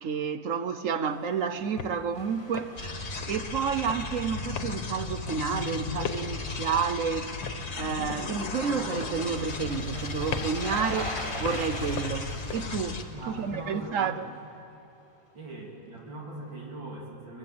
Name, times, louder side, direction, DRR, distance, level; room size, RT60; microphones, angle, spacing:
voice 1, 0.0-14.3, right 6 dB, 60° right, 0.9 m, -30 dB
sound 1, 1.1-12.7, left 6 dB, 80° left, 1.9 m, -42 dB
sound 2, 2.1-14.0 14.4-14.5, left 1 dB, 15° left, 3.6 m, -41 dB
sound 3, 2.8-13.0, left 4 dB, 40° left, 1.5 m, -36 dB
voice 2, 13.1-14.2 15.3-17.4, right 2 dB, 80° right, 4.0 m, -40 dB
24.5 x 20.5 x 7.8 m
omnidirectional pair, 2.0 m